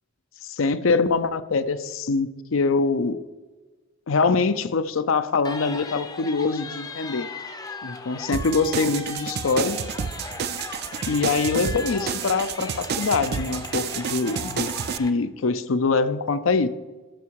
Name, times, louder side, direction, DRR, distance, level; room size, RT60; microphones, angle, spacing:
voice 1, 0.4-3.2 4.1-7.3 7.8-9.8 11.1-14.7 15.0-16.7, left 4 dB, 80° left, 12 dB, 0.6 m, -24 dB
sound 1, 5.4-15.1, left 4 dB, 20° left, 0.5 m, -37 dB
sound 2, 8.3-15.0, right 7 dB, 50° right, 0.4 m, -30 dB
13.0 x 6.2 x 4.7 m, 1.3 s
head